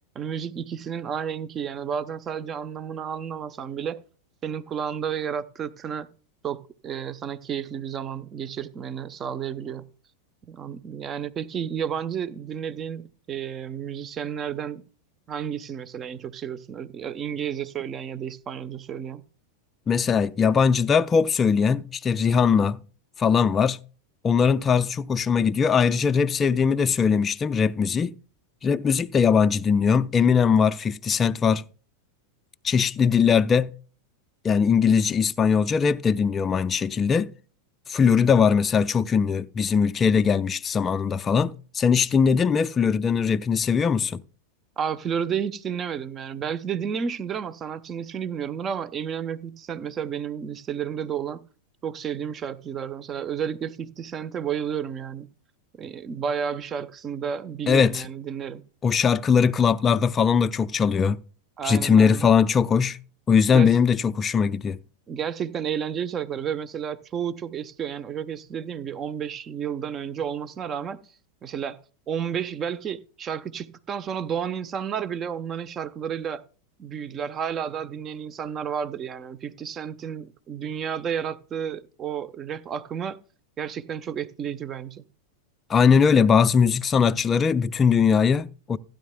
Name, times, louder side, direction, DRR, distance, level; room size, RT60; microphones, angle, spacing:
voice 1, 0.1-4.0 4.4-6.1 6.4-6.6 6.8-9.8 10.5-14.8 15.3-19.2 44.8-51.4 51.8-55.3 55.8-58.6 61.6-62.3 63.5-63.8 65.1-71.0 71.4-71.8 72.1-76.4 76.8-83.2 83.6-85.1, right 8 dB, 30° right, 0.7 m, -31 dB
voice 2, 19.9-22.8 23.2-23.8 24.2-28.1 28.6-31.6 32.6-33.7 34.4-37.3 37.9-44.2 57.7-58.0 58.8-61.2 61.6-63.0 63.3-64.8 85.7-88.8, left 6 dB, 25° left, 0.4 m, -20 dB
15.5 x 10.0 x 2.2 m
figure-of-eight pair, 90°, 0 cm